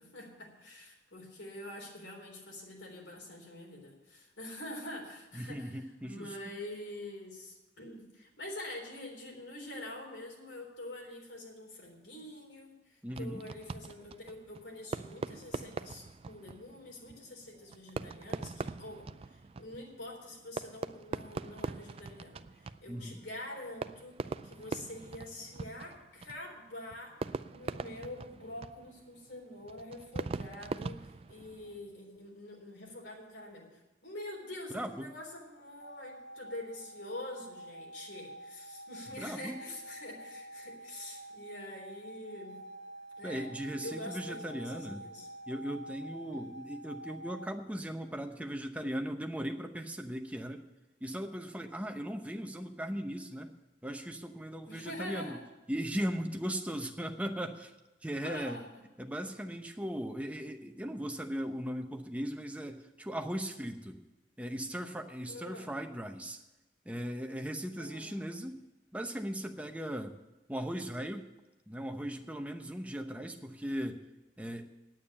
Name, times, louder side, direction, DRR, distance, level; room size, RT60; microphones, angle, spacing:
voice 1, 0.0-24.2 24.4-27.1 27.5-42.6 43.2-45.3 46.3-46.5 54.7-55.4 58.2-58.8 65.3-65.7 67.8-68.3, left 1 dB, 85° left, 0 dB, 3.8 m, -46 dB
voice 2, 5.4-6.3 13.0-13.4 22.9-23.2 34.7-35.1 39.1-39.6 43.2-45.0 45.5-50.6 51.0-53.5 53.8-55.4 55.7-57.7 58.0-58.6 59.0-64.0 64.4-66.4 66.8-68.6 68.9-70.1 70.5-71.3 71.7-74.0 74.4-74.7, equal, 10° right, 5 dB, 0.8 m, -38 dB
Fireworks, 13.1-31.9, right 4 dB, 35° right, 0.3 m, -42 dB
sound 1, 35.8-47.5, right 1 dB, 90° right, 1.1 m, -48 dB
9.1 x 8.8 x 8.7 m, 1.0 s
head